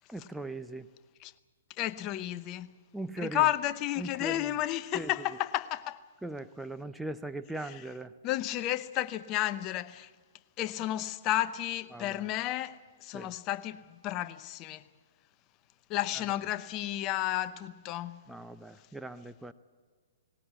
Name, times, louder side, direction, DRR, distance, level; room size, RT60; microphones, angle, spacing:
voice 1, 0.1-0.9 2.9-3.4 4.0-4.5 4.9-5.1 6.2-8.1 11.9-12.2 13.1-13.3 18.3-19.5, right 2 dB, 5° right, 0.6 m, -39 dB
voice 2, 1.8-2.8 3.2-6.0 7.6-7.9 8.2-10.1 10.6-14.8 15.9-18.2, left 14 dB, 30° left, 0.8 m, -32 dB
19.5 x 19.0 x 8.2 m
hypercardioid pair, 125°, 0 cm